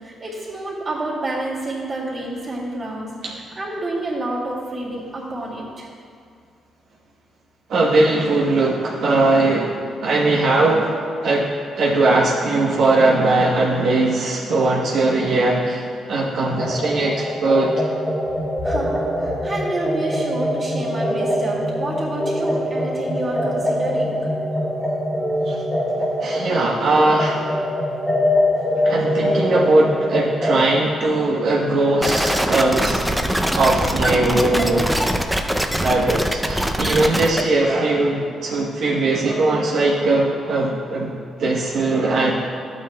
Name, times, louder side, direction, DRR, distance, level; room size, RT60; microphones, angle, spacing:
voice 1, 0.0-3.1 3.6-5.9 18.6-24.2, right 2 dB, 40° right, -6 dB, 2.2 m, -28 dB
voice 2, 7.7-10.9 11.2-17.9 25.4-25.6 26.2-27.4 28.8-33.0 33.5-34.9 35.8-41.1 41.4-42.3, right 2 dB, 70° right, -4 dB, 1.0 m, -19 dB
sound 1, 16.6-30.6, left 1 dB, 15° left, 1.2 m, -23 dB
sound 2, 32.0-37.4, equal, 5° right, 0.5 m, -22 dB
12.0 x 8.9 x 2.3 m, 2.3 s
cardioid pair, 115°, 0 cm